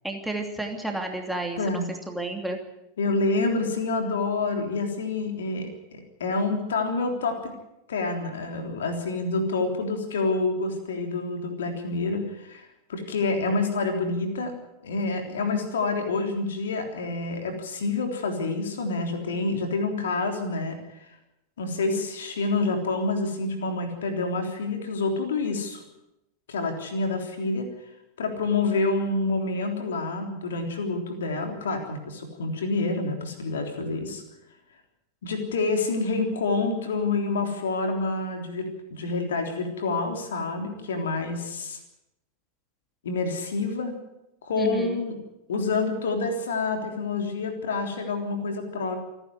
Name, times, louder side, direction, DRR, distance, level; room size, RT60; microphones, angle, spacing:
voice 1, 0.0-2.6 44.6-45.0, right 2 dB, 5° right, 3 dB, 2.8 m, -31 dB
voice 2, 1.6-1.9 3.0-7.5 7.9-14.5 14.8-20.8 21.6-25.8 26.5-27.7 28.2-34.2 35.2-41.8 43.0-43.9 44.4-45.2 45.5-49.0, left 3 dB, 65° left, 5 dB, 3.5 m, -28 dB
28.0 x 10.0 x 9.6 m, 0.89 s
figure-of-eight pair, 90°, 0 cm